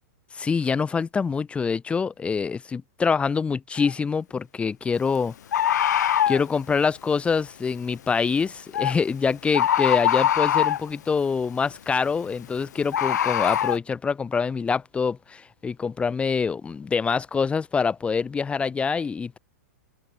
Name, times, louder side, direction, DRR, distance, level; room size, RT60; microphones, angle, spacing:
voice 1, 0.3-5.8 6.3-19.4, left 5 dB, 10° left, 1.2 m, -25 dB
Bird, 3.8-3.9 5.5-6.5 8.7-9.0 9.5-10.9 12.9-13.8, left 10 dB, 75° left, 2.2 m, -22 dB
open air
hypercardioid pair, 135°, 9 cm